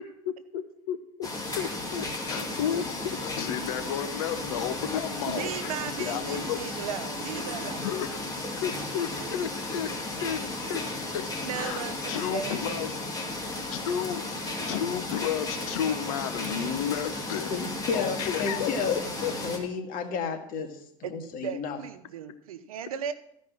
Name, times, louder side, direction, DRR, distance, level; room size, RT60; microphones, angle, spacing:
voice 1, 0.2-1.3 1.5-5.7 6.0-6.6 7.8-8.2 8.5-9.9 10.2-10.8 11.1-11.2 11.6-12.9 13.7-14.2 14.7-17.5 17.9-19.3, left 9 dB, 75° left, 10 dB, 1.0 m, -32 dB
sound 1, 1.2-19.6, left 2 dB, 20° left, 2.5 m, -34 dB
voice 2, 5.3-7.8 11.4-11.9 12.3-12.8 21.0-21.1 21.4-23.1, right 8 dB, 85° right, 11 dB, 0.9 m, -36 dB
voice 3, 17.5-19.0 19.4-20.7 21.1-21.8, left 5 dB, 55° left, 5 dB, 1.9 m, -31 dB
14.5 x 5.3 x 6.1 m, 0.74 s
hypercardioid pair, 90°, 18 cm